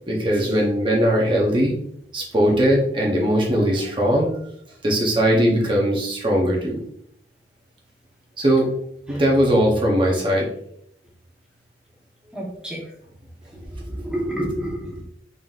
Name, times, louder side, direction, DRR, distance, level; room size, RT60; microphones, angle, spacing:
voice 1, 0.1-1.7 2.1-4.3 4.8-6.8 8.4-8.7 9.1-10.5, equal, 30° right, -2 dB, 0.7 m, -19 dB
voice 2, 12.3-12.8 13.7-15.0, right 1 dB, 5° right, -3 dB, 0.9 m, -29 dB
3.8 x 3.8 x 2.4 m, 0.70 s
head